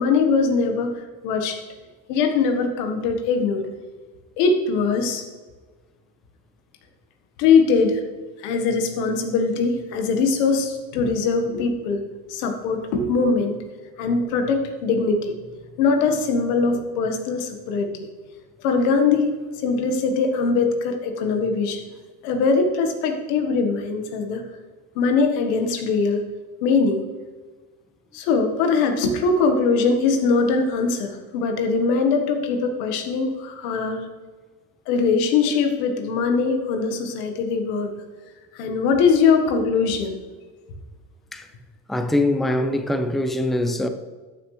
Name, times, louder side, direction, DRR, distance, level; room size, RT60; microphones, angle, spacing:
voice 1, 0.0-1.6 2.1-3.7 4.4-5.2 7.4-8.0 8.4-12.0 12.3-13.6 14.0-15.3 15.8-17.9 18.6-19.3 19.6-21.8 22.2-24.4 24.9-26.2 26.6-27.0 28.1-34.1 34.9-37.9 38.5-40.2, left 4 dB, 80° left, 1.5 m, -21 dB
voice 2, 41.9-43.9, left 1 dB, ahead, 0.7 m, -23 dB
13.5 x 6.5 x 3.3 m
supercardioid pair, 80°, 45 cm